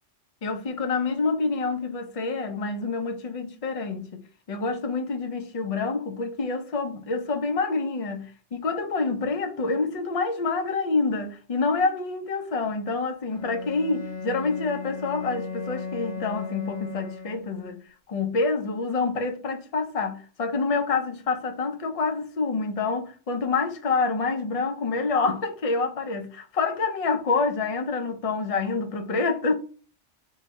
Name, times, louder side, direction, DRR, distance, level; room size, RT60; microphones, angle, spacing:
voice 1, 0.4-4.2 4.5-17.8 18.1-29.5, left 4 dB, 45° left, 0.5 m, -27 dB
Bowed string instrument, 13.3-17.7, left 5 dB, 20° left, 1.5 m, -36 dB
2.8 x 2.7 x 4.2 m
omnidirectional pair, 1.3 m